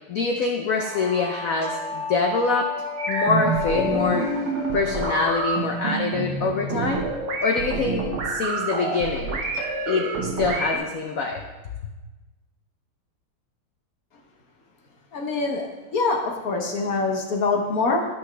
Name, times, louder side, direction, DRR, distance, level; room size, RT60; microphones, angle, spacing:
voice 1, 0.1-2.7 3.1-4.3 4.7-7.0 7.4-9.4 9.9-11.4, left 4 dB, 80° left, 2 dB, 0.7 m, -25 dB
sound 1, 0.8-5.9, left 5 dB, 40° left, 0.6 m, -32 dB
sound 2, 3.0-10.8, right 3 dB, 75° right, 2.0 m, -27 dB
voice 2, 15.1-18.0, left 3 dB, 55° left, 1 dB, 1.1 m, -24 dB
13.0 x 6.0 x 3.3 m, 1.2 s
omnidirectional pair, 2.3 m